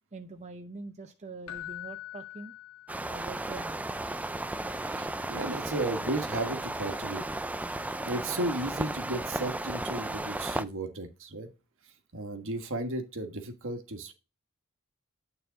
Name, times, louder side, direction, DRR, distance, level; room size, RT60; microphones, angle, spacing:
voice 1, 0.1-2.5 3.1-3.8, right 3 dB, 30° right, 5 dB, 0.7 m, -44 dB
Keyboard (musical), 1.5-3.4 6.7-6.8, left 14 dB, 80° left, 1.0 m, -43 dB
sound 1, 2.9-10.6, right 2 dB, 5° right, 0.3 m, -34 dB
voice 2, 4.8-7.2 8.0-11.5 12.1-14.1, right 2 dB, 60° right, 6 dB, 1.4 m, -34 dB
9.3 x 4.1 x 3.9 m, 0.30 s
head